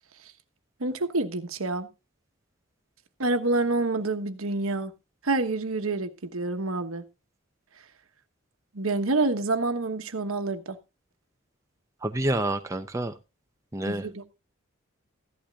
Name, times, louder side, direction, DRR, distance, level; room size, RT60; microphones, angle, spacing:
voice 1, 0.8-1.9 3.2-4.9 5.2-7.0 8.7-10.8 13.9-14.2, right 2 dB, 80° right, 1.2 m, -27 dB
voice 2, 12.0-13.1 13.7-14.2, right 1 dB, 15° right, 0.6 m, -28 dB
15.5 x 11.5 x 2.4 m
head